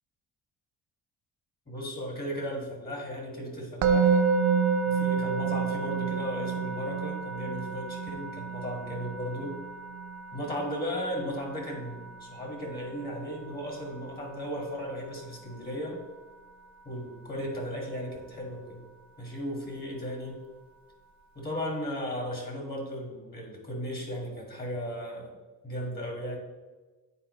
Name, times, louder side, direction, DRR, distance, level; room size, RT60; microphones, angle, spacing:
voice 1, 1.7-4.3 4.9-9.6 10.3-16.0 16.9-18.8 19.2-20.4 21.4-25.3 25.6-26.4, equal, 25° left, 0 dB, 1.8 m, -36 dB
Musical instrument, 3.8-14.9, right 6 dB, 55° right, 0.5 m, -30 dB
9.0 x 4.1 x 3.2 m, 1.2 s
cardioid pair, 115°, 36 cm